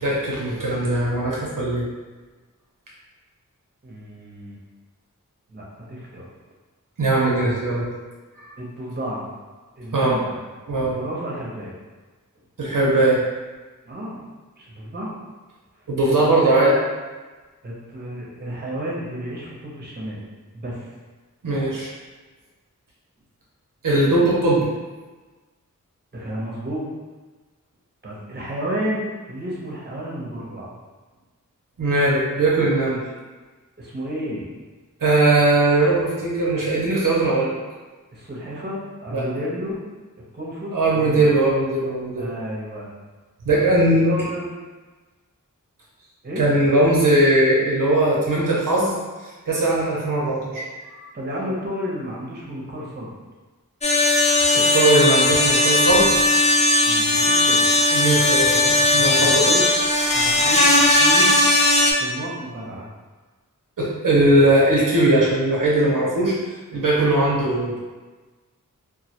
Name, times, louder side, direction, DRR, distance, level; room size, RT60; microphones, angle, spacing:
voice 1, 0.0-1.9 7.0-7.9 9.9-10.2 10.7-11.0 12.6-13.2 15.9-16.7 21.4-21.9 23.8-24.7 31.8-33.0 35.0-37.6 39.1-39.3 40.7-42.3 43.4-44.1 46.4-49.0 49.5-50.6 54.5-56.2 57.9-59.5 63.8-66.3 66.7-67.8, right 2 dB, 75° right, -5 dB, 0.6 m, -19 dB
voice 2, 3.8-4.6 5.5-6.3 8.6-9.3 9.8-10.4 10.8-11.8 13.9-14.2 14.6-15.1 16.2-16.8 17.6-20.3 20.5-20.9 26.1-26.9 28.0-30.7 33.8-34.6 38.1-39.8 40.3-41.3 42.2-42.9 43.5-44.4 46.2-46.4 51.1-53.1 56.9-57.7 59.1-59.6 60.1-61.3 62.0-62.9, equal, 30° right, -5 dB, 0.6 m, -31 dB
sound 1, 53.8-61.9, left 2 dB, 20° left, 0.3 m, -17 dB
2.1 x 2.1 x 2.8 m, 1.3 s
wide cardioid pair, 45°, 33 cm